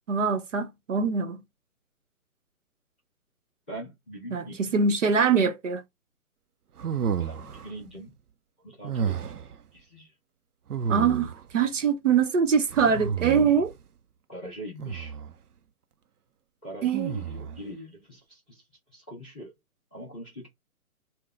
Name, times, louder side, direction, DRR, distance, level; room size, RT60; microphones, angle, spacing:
voice 1, 0.1-1.4 4.3-5.8 10.9-13.7 16.8-17.1, right 6 dB, 55° right, 0.9 m, -23 dB
voice 2, 3.7-4.6 7.2-8.1 8.6-9.3 9.7-10.1 14.3-15.2 16.6-18.6 18.9-19.5 19.9-20.5, equal, 5° left, 0.5 m, -42 dB
sound 1, 6.8-7.7 8.8-9.5 10.7-11.5 12.7-13.7 14.8-15.3 16.9-17.6, right 7 dB, 85° right, 0.6 m, -31 dB
3.9 x 2.2 x 3.7 m
figure-of-eight pair, 140°, 44 cm